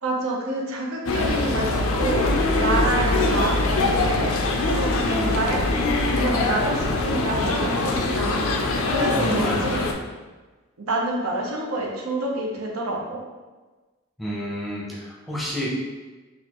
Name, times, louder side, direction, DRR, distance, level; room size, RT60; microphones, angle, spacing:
voice 1, 0.0-4.4 4.6-5.6 6.2-9.9 10.9-13.2, right 1 dB, 85° right, -1 dB, 0.7 m, -28 dB
sound 1, 1.1-9.9, left 2 dB, 75° left, 0.4 m, -23 dB
voice 2, 2.9-3.2 5.0-5.4 9.1-9.9 14.2-15.7, equal, ahead, -6 dB, 0.6 m, -30 dB
4.0 x 2.5 x 2.9 m, 1.2 s
head